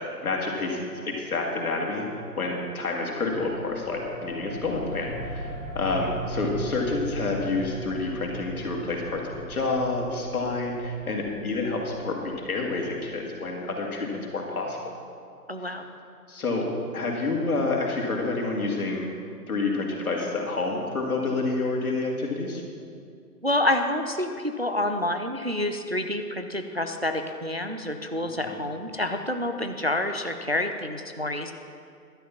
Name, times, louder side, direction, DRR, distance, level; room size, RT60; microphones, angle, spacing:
voice 1, 0.0-2.1 2.4-9.2 9.5-14.8 15.6-15.7 16.3-16.7 16.9-19.1 19.5-22.6 28.2-28.5, left 3 dB, 60° left, 0 dB, 2.4 m, -28 dB
sound 1, 3.3-13.5, right 2 dB, 85° right, 2.8 m, -38 dB
voice 2, 15.5-15.8 23.4-31.5, left 1 dB, 45° right, 6 dB, 0.4 m, -28 dB
11.5 x 8.2 x 5.8 m, 2.4 s
figure-of-eight pair, 160°, 48 cm